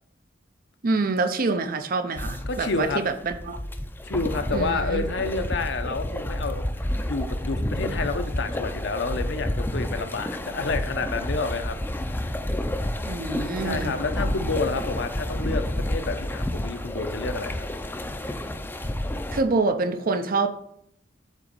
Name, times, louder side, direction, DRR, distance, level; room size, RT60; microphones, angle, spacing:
voice 1, 0.8-3.6 4.5-5.0 13.0-13.9 19.3-20.5, right 3 dB, 50° right, 9 dB, 0.6 m, -26 dB
sound 1, 2.2-19.4, left 1 dB, 10° left, 0.5 m, -30 dB
voice 2, 2.5-3.0 4.0-6.6 7.1-12.2 13.6-17.7, left 3 dB, 65° left, 8 dB, 0.8 m, -29 dB
7.4 x 4.1 x 5.3 m, 0.71 s
head